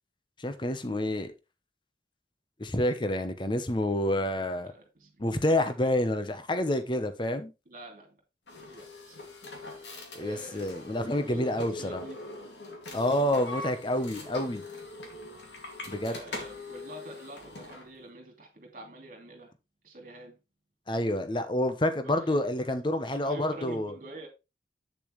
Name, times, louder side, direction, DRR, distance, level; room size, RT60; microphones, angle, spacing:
voice 1, 0.4-1.3 2.6-4.7 5.2-7.5 10.1-12.0 12.9-14.6 15.9-16.2 20.9-23.9, left 1 dB, 25° left, 0.9 m, -28 dB
voice 2, 4.6-5.4 7.7-8.2 8.7-9.2 10.1-10.7 11.1-12.2 12.9-13.2 16.1-19.5 19.8-20.4 22.0-22.3 23.1-24.3, right 1 dB, 50° right, 2.8 m, -46 dB
sound 1, 8.5-17.9, left 2 dB, 85° left, 2.4 m, -42 dB
8.5 x 6.8 x 3.2 m
head